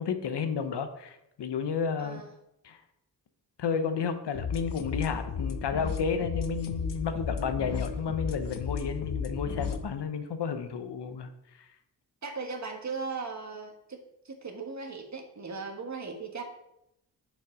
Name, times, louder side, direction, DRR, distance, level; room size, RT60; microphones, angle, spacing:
voice 1, 0.0-2.2 2.6-2.8 3.6-11.3, left 6 dB, 75° left, 8 dB, 1.0 m, -32 dB
sound 1, 4.3-9.8, left 6 dB, 50° left, 0.8 m, -34 dB
voice 2, 12.2-16.4, right 4 dB, 40° right, 4 dB, 1.6 m, -38 dB
6.6 x 6.4 x 5.0 m, 0.82 s
cardioid pair, 75°, 41 cm